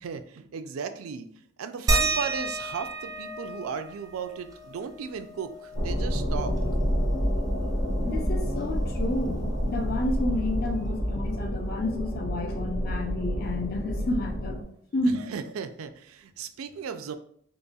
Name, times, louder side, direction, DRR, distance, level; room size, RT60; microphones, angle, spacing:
voice 1, 0.0-6.6 15.1-17.2, right 6 dB, 80° right, 9 dB, 0.4 m, -36 dB
sound 1, 1.9-7.0 7.4-7.5 7.8-9.5 10.8-10.9 11.6-11.7, right 2 dB, 15° right, 0.4 m, -32 dB
sound 2, 5.7-14.6, equal, 80° left, 1.3 m, -28 dB
voice 2, 8.0-14.6 14.9-15.2, left 2 dB, 45° left, 4 dB, 0.5 m, -30 dB
4.0 x 3.5 x 2.3 m, 0.63 s
head